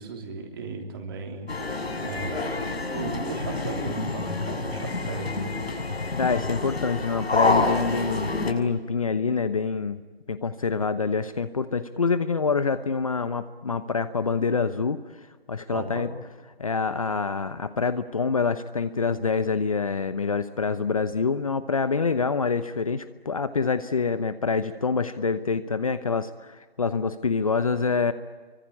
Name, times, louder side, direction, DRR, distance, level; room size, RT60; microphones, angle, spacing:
voice 1, 0.0-5.8 15.7-16.1, right 4 dB, 25° right, 3 dB, 3.2 m, -36 dB
sound 1, 1.5-8.5, left 3 dB, 80° left, 6.7 m, -28 dB
voice 2, 6.2-10.0 10.3-15.0 15.5-16.1 16.6-28.1, left 5 dB, 35° left, 12 dB, 0.9 m, -26 dB
28.0 x 24.5 x 8.6 m, 1.4 s
figure-of-eight pair, 165°, 31 cm